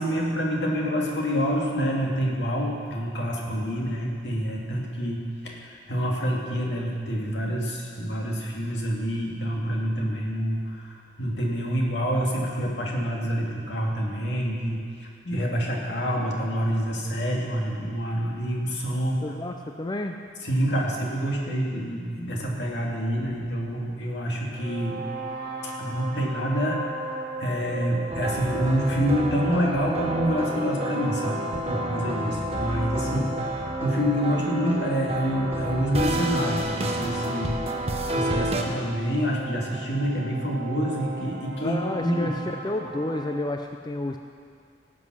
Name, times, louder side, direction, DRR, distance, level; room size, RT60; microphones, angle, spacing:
voice 1, 0.0-19.2 20.4-25.0 25.6-37.5 38.1-42.3, equal, 70° left, -2 dB, 2.4 m, -27 dB
voice 2, 19.2-20.2 41.6-42.3 42.6-44.2, left 2 dB, 25° left, 4 dB, 0.5 m, -30 dB
sound 1, 24.5-43.4, right 2 dB, 60° right, 1.2 m, -37 dB
sound 2, 28.1-38.6, right 1 dB, 35° right, 1.1 m, -30 dB
18.0 x 7.7 x 6.2 m, 2.2 s
head